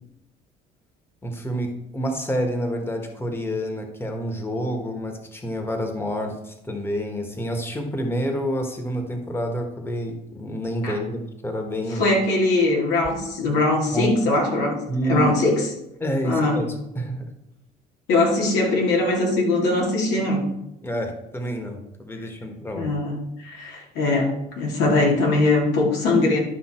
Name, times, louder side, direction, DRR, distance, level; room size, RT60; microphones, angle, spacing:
voice 1, 1.2-12.0 13.9-14.1 14.9-15.3 16.0-17.2 20.8-22.9, equal, 15° left, 4 dB, 1.4 m, -28 dB
voice 2, 11.9-15.7 16.2-16.6 18.1-20.4 22.8-26.4, left 2 dB, 85° left, -1 dB, 2.7 m, -21 dB
11.5 x 5.5 x 4.4 m, 0.87 s
cardioid pair, 110°, 17 cm